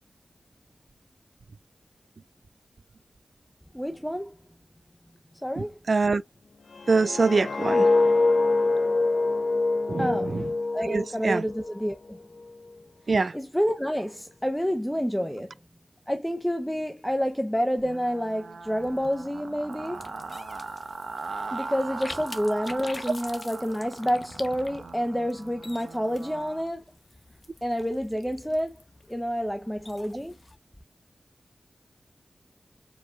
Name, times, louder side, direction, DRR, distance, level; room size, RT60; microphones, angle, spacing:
voice 1, 3.7-4.4 5.4-5.8 10.0-10.4 10.7-12.2 13.3-15.5 16.1-20.0 21.5-26.8 27.6-28.8 29.1-30.4, equal, 5° left, 0.7 m, -28 dB
voice 2, 5.6-6.2 6.9-7.9 9.9-10.5 10.8-11.5 13.1-13.4, right 4 dB, 60° right, 0.3 m, -25 dB
sound 1, 6.7-11.8 12.1-12.4, left 3 dB, 70° left, 0.4 m, -24 dB
sound 2, 17.8-26.7, right 4 dB, 80° right, 1.0 m, -40 dB
sound 3, 18.6-30.6, left 2 dB, 40° left, 0.8 m, -46 dB
4.7 x 4.5 x 2.3 m
wide cardioid pair, 70°, 0 cm